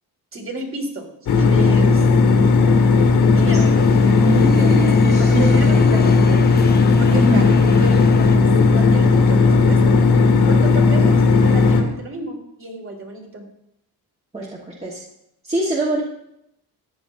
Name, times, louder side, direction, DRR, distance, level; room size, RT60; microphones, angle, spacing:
voice 1, 0.3-2.8 3.2-3.7 4.4-5.0 5.3-6.5 7.0-9.9 10.5-13.5, right 2 dB, 35° right, 1 dB, 2.1 m, -32 dB
sound 1, 1.3-11.8, left 4 dB, 85° left, 2.1 m, -15 dB
sound 2, 3.3-8.4, left 5 dB, 25° left, 0.7 m, -31 dB
voice 2, 4.2-5.7 7.1-7.4 14.3-15.0 15.4-16.0, right 1 dB, 15° right, -4 dB, 1.3 m, -23 dB
14.0 x 9.2 x 2.6 m, 0.80 s
cardioid pair, 135°, 39 cm